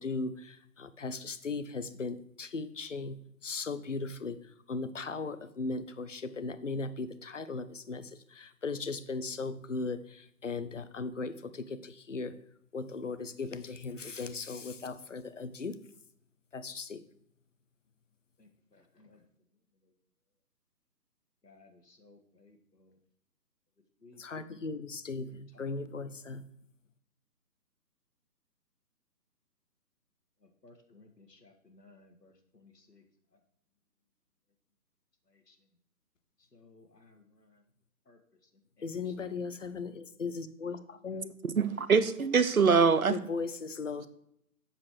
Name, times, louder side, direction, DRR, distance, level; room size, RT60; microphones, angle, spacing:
voice 1, 0.0-3.2 3.4-4.4 4.7-12.3 12.7-15.8 16.5-17.0 24.2-26.4 38.8-41.3 43.1-44.1, left 4 dB, 50° left, 0.7 m, -37 dB
voice 2, 30.6-32.3 36.6-36.9 38.1-38.2, left 3 dB, 75° left, 1.7 m, -57 dB
voice 3, 41.4-43.2, right 5 dB, 60° right, 0.7 m, -24 dB
7.6 x 6.9 x 4.7 m
figure-of-eight pair, 145°, 49 cm